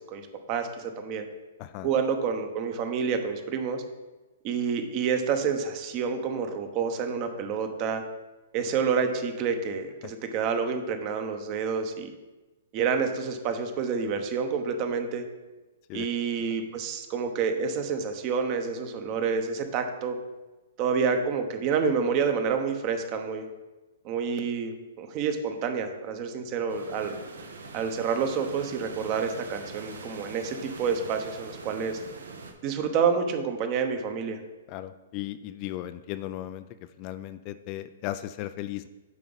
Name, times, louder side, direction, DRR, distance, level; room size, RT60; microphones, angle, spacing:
voice 1, 0.1-1.3 1.8-3.8 4.4-8.0 8.5-12.1 12.7-15.2 15.9-20.2 20.8-23.5 24.0-27.2 27.7-32.0 32.6-34.4, right 6 dB, 35° right, 6 dB, 0.9 m, -28 dB
voice 2, 1.6-1.9 10.0-10.1 15.9-16.1 16.4-16.5 34.7-36.7 37.0-38.9, left 14 dB, 35° left, 11 dB, 0.3 m, -36 dB
sound 1, 26.7-32.5, right 4 dB, 85° right, 1.0 m, -43 dB
7.3 x 4.8 x 4.0 m, 1.1 s
hypercardioid pair, 130°, 0 cm